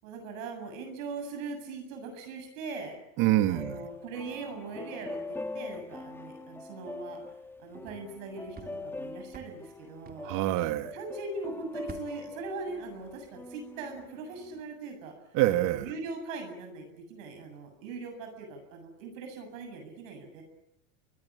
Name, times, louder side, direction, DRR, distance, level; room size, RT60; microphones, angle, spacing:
voice 1, 0.0-3.0 3.5-7.2 7.6-10.3 10.9-15.1 15.5-20.4, right 3 dB, 75° right, 4 dB, 8.0 m, -40 dB
voice 2, 3.2-3.9 10.2-10.9 15.3-15.9, right 14 dB, 55° right, 10 dB, 2.0 m, -26 dB
sound 1, 3.5-14.6, left 2 dB, 5° left, 1.9 m, -43 dB
sound 2, 7.4-11.2 11.5-13.5 13.8-14.1, right 6 dB, 25° right, 2.5 m, -52 dB
25.5 x 20.5 x 9.9 m, 0.82 s
supercardioid pair, 120°, 39 cm